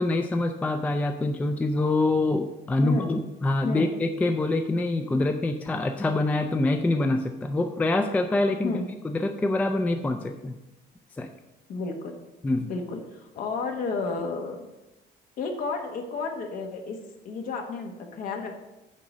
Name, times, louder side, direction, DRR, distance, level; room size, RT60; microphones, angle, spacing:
voice 1, 0.0-8.8 9.0-10.6 11.2-11.3 12.4-12.7, left 2 dB, 10° left, 6 dB, 0.3 m, -25 dB
voice 2, 2.8-3.1 3.6-3.9 8.6-8.8 11.7-12.1 12.7-14.7 15.4-17.0 17.2-18.5, left 4 dB, 50° left, 3 dB, 1.3 m, -31 dB
9.4 x 3.8 x 6.2 m, 0.95 s
cardioid pair, 175°, 18 cm